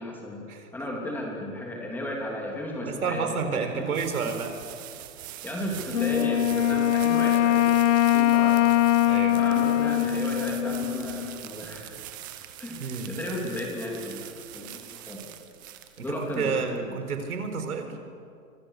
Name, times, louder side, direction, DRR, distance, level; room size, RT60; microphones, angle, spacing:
voice 1, 0.0-0.5 0.7-3.9 5.4-7.8 8.1-8.7 9.3-11.9 12.6-15.3 16.0-17.0 17.6-17.7, left 1 dB, 5° left, -1 dB, 3.0 m, -34 dB
sound 1, 2.7-17.6, right 13 dB, 15° right, 0.6 m, -44 dB
voice 2, 2.9-4.5 9.0-9.4 12.8-13.2 16.0-18.0, right 5 dB, 85° right, 7 dB, 4.5 m, -30 dB
Wind instrument woodwind instrument, 5.9-11.4, left 12 dB, 60° left, 0.9 m, -22 dB
27.5 x 25.0 x 6.6 m, 2.4 s
hypercardioid pair, 165°, 43 cm